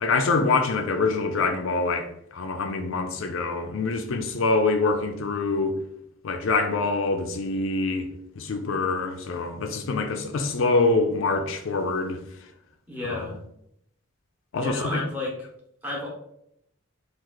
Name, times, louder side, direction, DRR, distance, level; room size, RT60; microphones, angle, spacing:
voice 1, 0.0-5.8 6.2-8.1 8.4-12.2 13.1-13.2 14.5-15.0, left 3 dB, 65° left, 0.4 m, -25 dB
voice 2, 12.9-13.4 14.6-15.3 15.8-16.1, left 2 dB, 10° right, 0.9 m, -31 dB
3.1 x 2.4 x 3.7 m
head